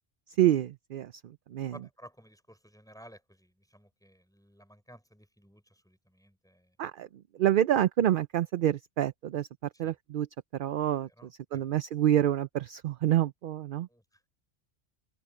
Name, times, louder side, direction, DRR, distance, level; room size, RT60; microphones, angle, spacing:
voice 1, 0.4-1.1 1.5-1.7 6.8-7.1 7.4-9.5 9.8-10.3 10.6-11.1 11.5-13.9, right 12 dB, 60° right, 0.6 m, -27 dB
voice 2, 1.7-6.8 9.7-10.0 11.1-11.8 13.9-14.2, equal, 5° left, 3.9 m, -55 dB
omnidirectional pair, 1.2 m